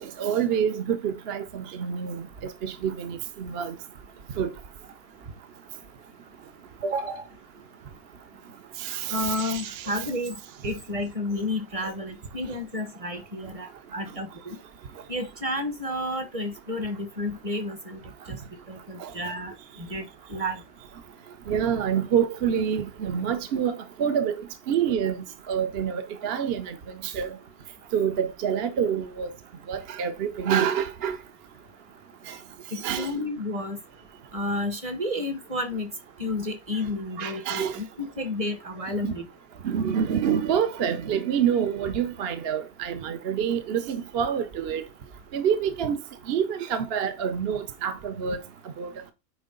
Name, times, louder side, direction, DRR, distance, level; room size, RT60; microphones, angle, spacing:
voice 1, 0.0-2.2 2.6-3.7 4.4-4.5 8.8-10.1 11.8-11.9 19.0-19.1 21.5-25.2 25.5-26.8 27.0-27.3 27.9-29.3 29.7-31.2 32.3-32.4 32.8-33.1 37.2-37.8 39.0-39.1 39.6-44.8 45.3-46.0 46.3-48.4 48.8-48.9, right 8 dB, 60° right, 0.9 m, -27 dB
voice 2, 6.8-7.2 9.1-14.6 15.1-18.0 18.3-18.4 18.7-20.6 32.7-33.8 34.3-35.9 36.2-39.3, left 1 dB, 30° right, 1.1 m, -31 dB
9.5 x 3.7 x 3.8 m
omnidirectional pair, 1.3 m